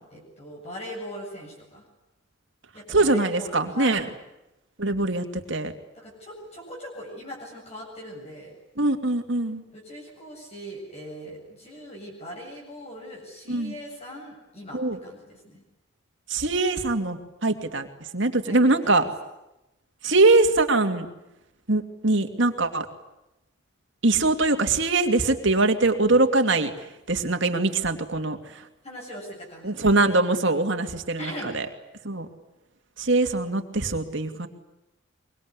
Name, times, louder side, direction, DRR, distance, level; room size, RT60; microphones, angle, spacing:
voice 1, 0.1-1.9 2.7-4.0 5.9-8.6 9.7-15.6 18.4-19.1 28.8-29.7 31.2-31.5, equal, 30° left, -2 dB, 7.9 m, -40 dB
voice 2, 2.9-4.0 4.8-5.7 8.8-9.6 13.5-13.7 14.7-15.0 16.3-17.9 18.1-19.0 20.0-21.1 21.7-22.9 24.0-26.7 27.1-28.7 29.6-31.7 32.0-32.3 33.0-34.5, right 2 dB, 60° right, 6 dB, 2.7 m, -22 dB
25.0 x 23.5 x 9.9 m, 0.92 s
head